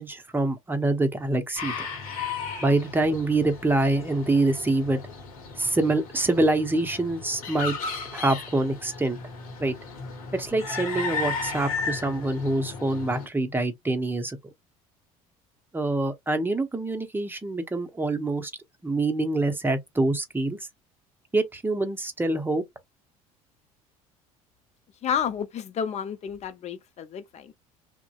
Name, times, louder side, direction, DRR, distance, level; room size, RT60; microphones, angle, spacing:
voice 1, 0.0-1.9 2.6-5.0 5.6-7.8 8.1-9.2 9.6-9.7 10.3-14.4 15.7-18.5 18.8-20.6 21.3-22.6, right 2 dB, 10° right, 0.7 m, -25 dB
sound 1, 1.6-13.3, left 4 dB, 80° left, 0.8 m, -35 dB
voice 2, 25.0-27.5, left 8 dB, 40° left, 0.6 m, -31 dB
2.6 x 2.1 x 2.3 m
hypercardioid pair, 65°, 18 cm